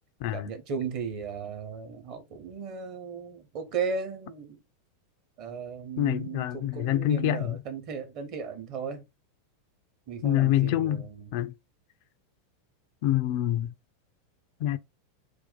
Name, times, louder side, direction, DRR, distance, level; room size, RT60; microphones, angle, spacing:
voice 1, 0.3-4.6 5.4-9.0 10.1-11.3, right 6 dB, 45° right, 0.9 m, -36 dB
voice 2, 6.0-7.5 10.2-11.0 11.3-11.5 13.0-13.7 14.6-14.8, left 13 dB, 50° left, 0.3 m, -26 dB
2.5 x 2.2 x 4.0 m
figure-of-eight pair, 90°, 0 cm